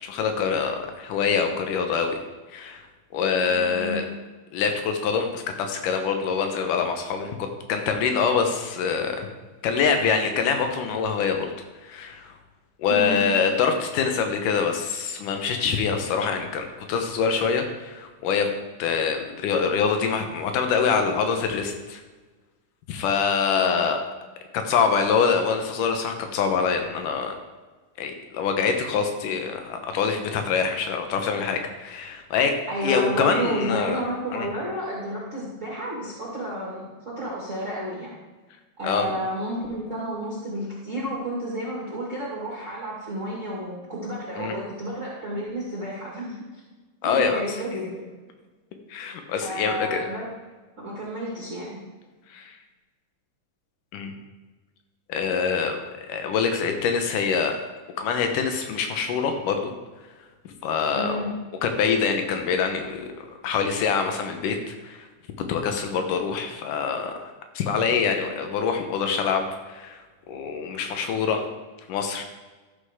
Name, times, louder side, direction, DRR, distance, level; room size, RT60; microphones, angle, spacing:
voice 1, 0.0-2.2 2.5-2.8 3.1-4.0 4.5-9.3 9.6-11.5 11.8-12.3 12.8-18.5 18.8-22.0 22.9-24.0 24.5-27.4 28.0-32.5 32.8-34.0 34.3-34.5 38.8-39.1 44.4-44.6 47.0-47.4 48.9-50.1 52.3-52.6 53.9-54.1 55.1-55.8 56.1-57.6 58.0-59.7 60.6-61.2 61.6-63.1 63.4-65.1 65.5-67.3 67.5-71.5 71.9-72.2, left 6 dB, 80° left, 5 dB, 2.6 m, -25 dB
voice 2, 3.5-4.0 12.9-13.3 23.6-23.8 32.7-38.1 38.8-46.4 47.0-48.0 49.4-50.3 50.8-51.8 60.9-61.3, right 1 dB, 25° right, -7 dB, 2.1 m, -31 dB
13.5 x 6.7 x 3.7 m, 1.3 s
omnidirectional pair, 3.7 m